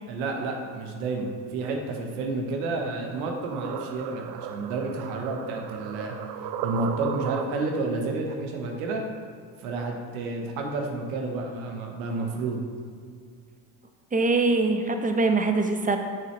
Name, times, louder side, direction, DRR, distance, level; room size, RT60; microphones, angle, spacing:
voice 1, 0.1-6.1 6.6-9.0 9.6-12.6, right 3 dB, 85° right, 2 dB, 1.0 m, -30 dB
sound 1, 2.8-7.9, right 9 dB, 55° right, 0.5 m, -36 dB
voice 2, 14.1-16.0, right 3 dB, 20° right, 5 dB, 0.8 m, -23 dB
6.6 x 6.0 x 3.1 m, 2.2 s
hypercardioid pair, 60°, 44 cm